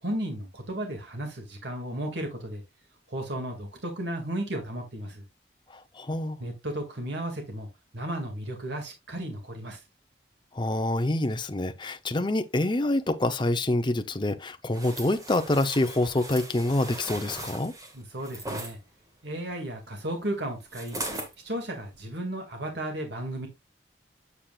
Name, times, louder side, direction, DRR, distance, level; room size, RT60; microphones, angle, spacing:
voice 1, 0.0-2.6 3.1-5.2 6.4-7.7 7.9-9.8 17.9-18.8 19.2-21.0 21.4-23.5, right 1 dB, 70° right, 2.1 m, -34 dB
voice 2, 5.9-6.4 10.5-17.7, left 1 dB, 25° left, 0.7 m, -26 dB
sound 1, 14.7-18.7 20.7-21.3 21.9-22.0, right 1 dB, 20° right, 1.7 m, -38 dB
8.4 x 7.4 x 2.4 m
head